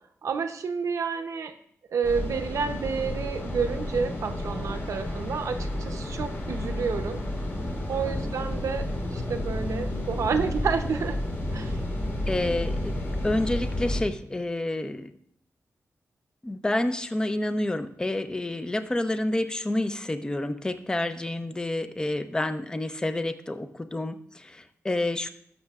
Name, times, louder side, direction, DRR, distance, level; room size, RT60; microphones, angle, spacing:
voice 1, 0.2-1.5 1.9-7.2 7.9-8.8 9.1-11.2 11.5-11.8, right 5 dB, 75° right, 6 dB, 0.7 m, -29 dB
sound 1, 2.0-14.0, left 1 dB, 45° left, 1.9 m, -31 dB
voice 2, 12.3-12.9 13.2-15.1 16.4-25.3, left 1 dB, 15° left, 10 dB, 0.5 m, -29 dB
19.0 x 6.5 x 2.4 m, 0.67 s
wide cardioid pair, 150°, 5 cm